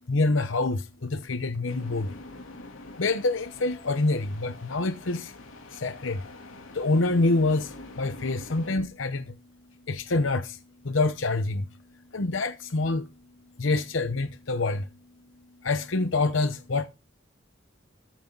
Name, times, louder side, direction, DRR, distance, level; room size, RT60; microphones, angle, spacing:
voice 1, 0.1-2.1 3.0-5.3 5.8-6.2 6.8-7.7 8.0-9.2 9.9-10.5 10.9-11.6 12.1-13.0 13.6-14.8 15.6-16.9, left 2 dB, 70° left, 0.9 m, -26 dB
sound 1, 1.7-8.7, left 2 dB, 85° left, 3.0 m, -45 dB
14.0 x 9.0 x 3.9 m
head